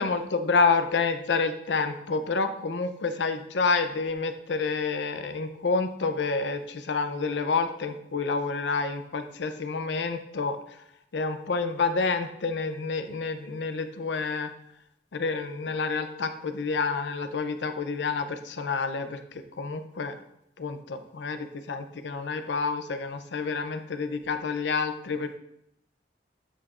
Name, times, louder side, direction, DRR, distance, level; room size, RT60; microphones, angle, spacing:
voice 1, 0.0-10.6 11.1-14.5 15.1-19.2 19.6-20.1 20.6-25.4, left 4 dB, 80° left, 9 dB, 0.6 m, -28 dB
9.4 x 5.8 x 2.5 m, 0.79 s
head